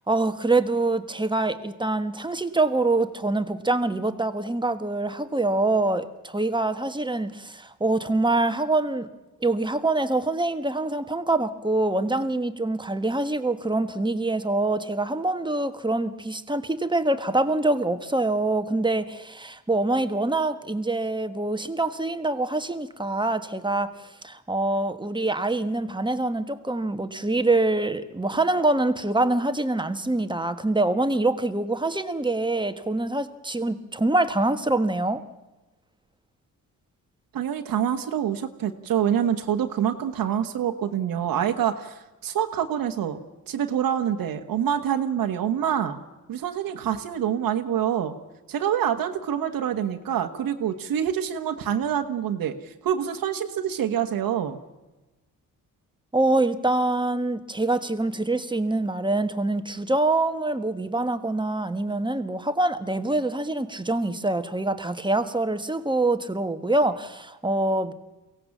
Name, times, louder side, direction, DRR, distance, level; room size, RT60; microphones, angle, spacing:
voice 1, 0.1-9.1 9.4-23.9 24.2-35.2 56.1-67.9, right 2 dB, 15° right, 9 dB, 1.4 m, -25 dB
voice 2, 37.3-43.2 43.5-46.0 46.3-48.1 48.5-54.6, right 9 dB, 90° right, 4 dB, 1.5 m, -26 dB
23.0 x 17.0 x 7.3 m, 1.1 s
cardioid pair, 90°, 33 cm